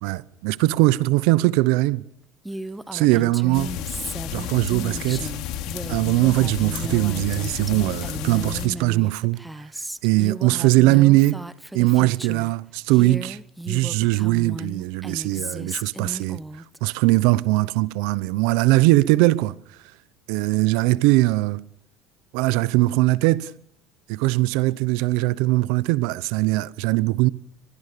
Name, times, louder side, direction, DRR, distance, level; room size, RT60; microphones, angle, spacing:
voice 1, 0.0-2.0 2.9-3.7 4.3-5.3 5.9-9.4 10.0-11.4 11.7-13.4 13.7-16.4 16.8-19.6 20.3-21.6 22.3-23.5 24.1-27.3, right 19 dB, 80° right, 0.8 m, -20 dB
Female speech woman speaking, 2.4-12.5 12.9-16.8, right 1 dB, 5° right, 0.8 m, -35 dB
sound 1, 3.5-8.7, left 10 dB, 70° left, 3.6 m, -32 dB
24.5 x 20.5 x 6.9 m
cardioid pair, 135°, 0 cm